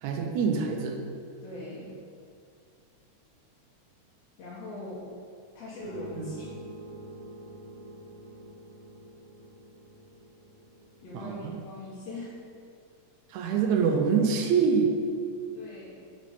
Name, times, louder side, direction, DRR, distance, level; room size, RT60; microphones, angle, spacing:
voice 1, 0.0-1.0 6.2-6.3 11.1-11.6 13.3-14.9, right 6 dB, 80° right, 3 dB, 1.9 m, -25 dB
voice 2, 1.4-1.9 4.4-5.1 5.6-6.5 11.0-12.4 15.5-16.0, left 2 dB, 65° left, -9 dB, 2.1 m, -41 dB
sound 1, 5.8-11.0, right 1 dB, 50° right, 2.0 m, -46 dB
6.0 x 4.7 x 4.2 m, 2.3 s
omnidirectional pair, 3.5 m